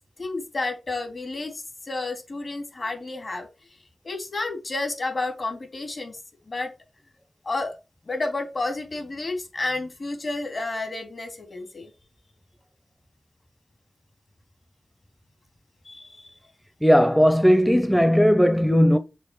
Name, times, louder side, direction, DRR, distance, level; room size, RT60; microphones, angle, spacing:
voice 1, 0.2-3.5 4.0-6.2 6.5-6.7 7.4-7.8 8.0-11.9 15.8-16.3, left 2 dB, 55° left, 3.1 m, -31 dB
voice 2, 16.8-19.0, equal, ahead, 0.7 m, -17 dB
6.6 x 5.2 x 4.8 m
cardioid pair, 50°, 0 cm